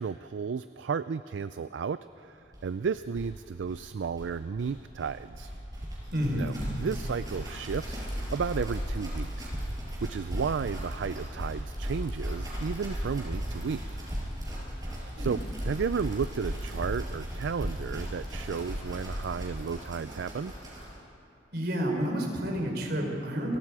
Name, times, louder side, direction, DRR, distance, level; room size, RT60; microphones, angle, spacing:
voice 1, 0.0-5.5 6.3-8.0 8.3-9.7 10.0-13.8 15.2-20.5, right 6 dB, 75° right, 13 dB, 0.4 m, -33 dB
sound 1, 2.5-2.6 2.8-2.9 3.1-21.0, equal, 20° right, 5.7 m, -36 dB
voice 2, 6.1-6.5 15.2-15.4 21.5-23.6, equal, 60° right, 1 dB, 4.2 m, -30 dB
29.0 x 22.5 x 4.9 m, 2.7 s
head